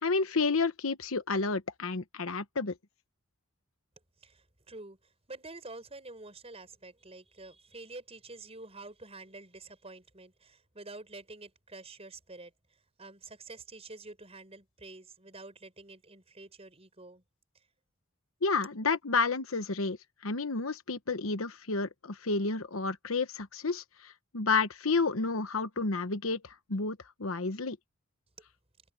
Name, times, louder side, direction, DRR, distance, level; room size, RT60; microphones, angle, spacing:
voice 1, 0.0-2.7 18.4-20.0 20.2-27.8, left 4 dB, 80° left, 1.1 m, -30 dB
voice 2, 4.2-17.2, right 2 dB, 30° right, 5.9 m, -48 dB
head